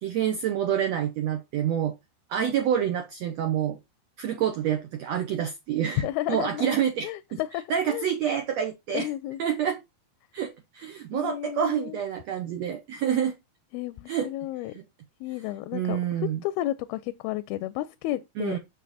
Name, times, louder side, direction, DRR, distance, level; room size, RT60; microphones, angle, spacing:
voice 1, 0.0-1.9 2.3-3.8 4.2-7.4 7.7-9.1 9.4-9.8 10.3-13.3 14.1-14.3 14.8-14.9 15.7-16.4 18.4-18.6, right 9 dB, 85° right, 1.4 m, -27 dB
voice 2, 6.0-8.1 8.9-9.4 11.1-12.0 13.7-14.7 15.2-18.6, left 15 dB, 90° left, 2.5 m, -32 dB
6.9 x 6.5 x 4.1 m
omnidirectional pair, 4.3 m